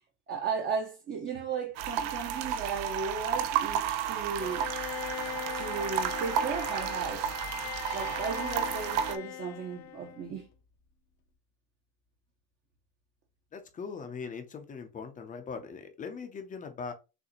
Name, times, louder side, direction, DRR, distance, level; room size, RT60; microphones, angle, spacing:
voice 1, 0.3-4.7 5.5-7.3 7.9-10.5, right 5 dB, 25° right, 0.7 m, -35 dB
sound 1, 1.8-9.2, right 9 dB, 65° right, 0.7 m, -32 dB
Bowed string instrument, 4.4-10.4, left 14 dB, 75° left, 0.8 m, -40 dB
voice 2, 13.5-16.9, left 5 dB, 20° left, 0.5 m, -40 dB
6.5 x 2.5 x 2.9 m
cardioid pair, 165°, 45 cm